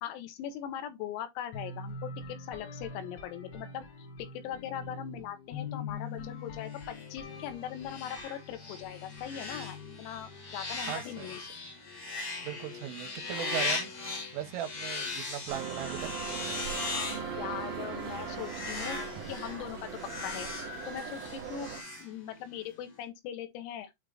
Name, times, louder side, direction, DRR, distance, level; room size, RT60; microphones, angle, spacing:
voice 1, 0.0-11.4 17.4-19.0 19.3-19.8 20.2-20.5 20.9-21.7 22.0-23.9, left 10 dB, 85° left, 3.9 m, -40 dB
sound 1, 1.5-11.3, left 4 dB, 65° left, 3.8 m, -44 dB
sound 2, 6.7-22.6, left 3 dB, 40° left, 2.0 m, -39 dB
voice 2, 10.9-11.5 12.4-13.9 14.3-16.1, right 11 dB, 80° right, 3.4 m, -38 dB
sound 3, 15.5-21.8, right 6 dB, 50° right, 2.3 m, -39 dB
8.7 x 3.0 x 3.8 m
omnidirectional pair, 6.0 m